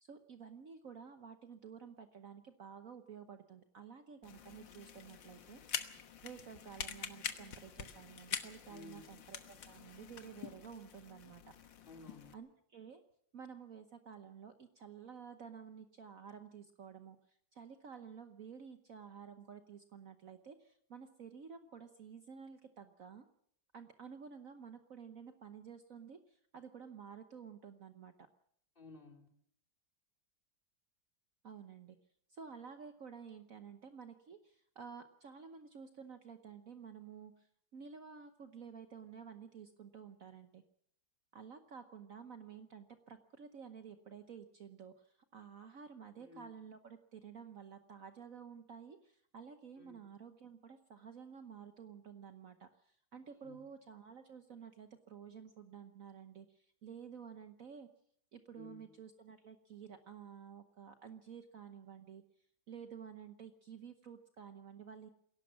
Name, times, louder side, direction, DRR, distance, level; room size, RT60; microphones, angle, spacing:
voice 1, 0.0-5.6 6.2-11.5 12.3-13.0 13.3-23.3 23.7-28.3 31.4-32.0 32.3-40.6 41.3-57.9 58.3-62.2 62.7-65.1, right 7 dB, 55° right, 8 dB, 1.3 m, -52 dB
sound 1, 4.2-12.3, left 8 dB, 90° left, 2.0 m, -46 dB
voice 2, 8.7-9.2 11.8-12.4 28.7-29.3 46.2-46.5 49.7-50.1 53.4-53.6 58.5-58.9, left 3 dB, 30° left, 3 dB, 3.2 m, -55 dB
21.0 x 17.5 x 7.2 m, 0.68 s
omnidirectional pair, 2.0 m